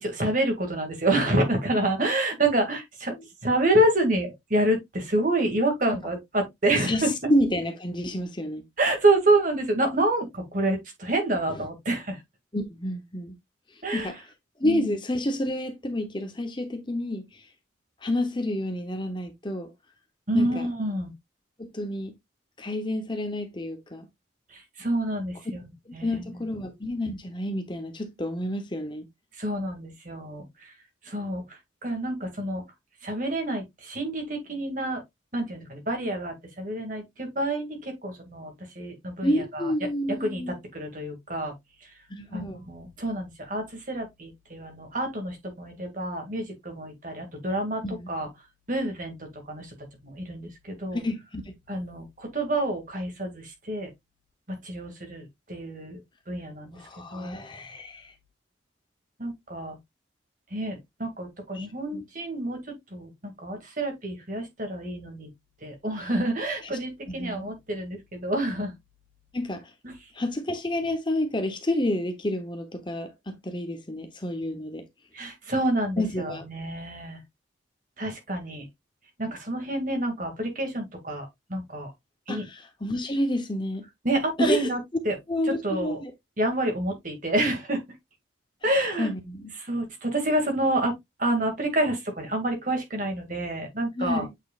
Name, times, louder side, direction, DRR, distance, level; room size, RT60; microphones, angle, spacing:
voice 1, 0.0-3.1 3.4-7.1 8.8-12.2 13.8-14.1 14.6-14.9 20.3-21.1 24.5-26.5 29.4-30.7 31.0-32.6 33.0-35.0 35.3-39.7 40.1-40.4 40.7-41.5 41.8-41.9 42.3-47.8 48.1-48.3 48.7-49.7 50.0-51.0 51.7-53.9 54.5-56.0 56.3-56.8 57.1-57.4 59.2-59.8 60.5-65.3 65.6-68.7 69.8-69.9 75.1-77.2 78.0-78.7 79.2-81.9 82.3-82.4 84.0-84.8 85.0-85.1 85.6-86.0 86.4-87.8 88.6-89.1 89.6-94.2, right 1 dB, 45° right, 2.3 m, -28 dB
voice 2, 6.8-8.6 11.5-11.7 12.5-13.4 13.7-14.2 14.6-17.5 18.0-19.7 20.3-20.7 21.6-22.1 22.6-24.1 25.9-29.1 39.2-40.6 42.1-42.6 47.8-48.1 50.9-51.5 56.7-58.1 61.5-61.7 61.9-62.0 66.6-66.8 67.1-67.5 69.3-69.7 70.1-74.9 76.0-76.5 82.3-83.9 84.4-84.7 85.3-86.1 88.6-89.5 94.0-94.3, left 1 dB, 25° left, 0.9 m, -29 dB
8.2 x 4.7 x 2.4 m
head